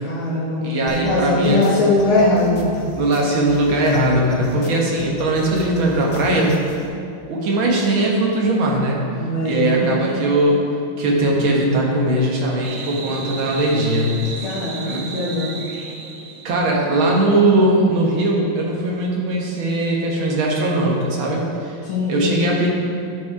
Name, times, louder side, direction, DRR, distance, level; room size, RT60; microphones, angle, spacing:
voice 1, 0.0-2.9 9.1-10.0 14.4-15.6 21.8-22.2, left 2 dB, 80° left, -7 dB, 2.0 m, -21 dB
voice 2, 0.6-1.7 2.1-2.3 2.9-6.5 7.3-9.0 9.4-10.6 11.0-14.3 14.9-15.0 16.4-21.7 22.1-22.7, right 1 dB, 70° right, -2 dB, 2.1 m, -19 dB
sound 1, 0.9-6.9, left 2 dB, 50° left, 0.9 m, -37 dB
sound 2, 12.6-16.9, right 4 dB, 85° right, 1.8 m, -34 dB
10.5 x 4.7 x 4.8 m, 2.5 s
omnidirectional pair, 2.3 m